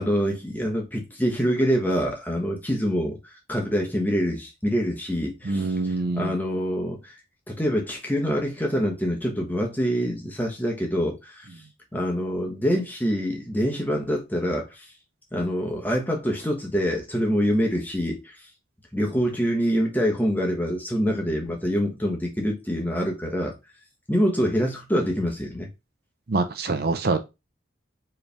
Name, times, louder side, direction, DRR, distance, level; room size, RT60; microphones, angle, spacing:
voice 1, 0.0-3.2 3.5-7.1 7.5-11.5 11.9-14.8 15.3-18.3 18.9-23.5 24.1-25.7, equal, 10° left, 1.1 m, -25 dB
voice 2, 5.4-6.3 26.3-27.2, right 3 dB, 50° right, 0.6 m, -25 dB
4.8 x 3.3 x 3.4 m
head